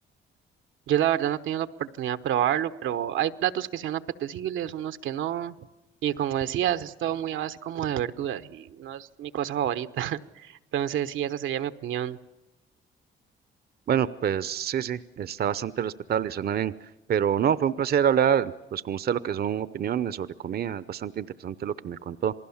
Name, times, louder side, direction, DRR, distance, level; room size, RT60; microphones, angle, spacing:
voice 1, 0.9-5.5 6.0-12.2, right 11 dB, 80° right, 11 dB, 1.0 m, -29 dB
voice 2, 13.9-22.3, right 9 dB, 50° right, 16 dB, 0.7 m, -27 dB
28.0 x 19.5 x 7.2 m, 0.99 s
cardioid pair, 90°, 20 cm